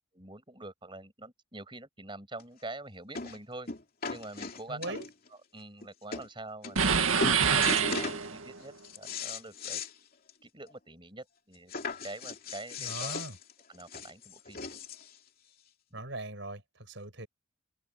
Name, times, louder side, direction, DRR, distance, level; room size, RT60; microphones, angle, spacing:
voice 1, 0.1-3.7 4.1-5.0 5.3-7.0 7.5-9.8 10.4-13.2 13.7-14.6, right 2 dB, 25° right, 6.7 m, -45 dB
sound 1, 2.4-2.5 3.1-3.4 3.7-5.3 5.8-5.9 6.1-6.3 6.6-6.9 7.2-8.2 8.6-9.9 10.3-10.4 10.7-10.8 11.7-15.2 16.0-16.1, left 4 dB, 45° left, 3.0 m, -38 dB
voice 2, 4.7-5.1 12.8-13.4 15.9-17.3, right 2 dB, 60° right, 7.2 m, -40 dB
sound 2, 6.8-8.6, right 6 dB, 80° right, 2.1 m, -26 dB
open air
head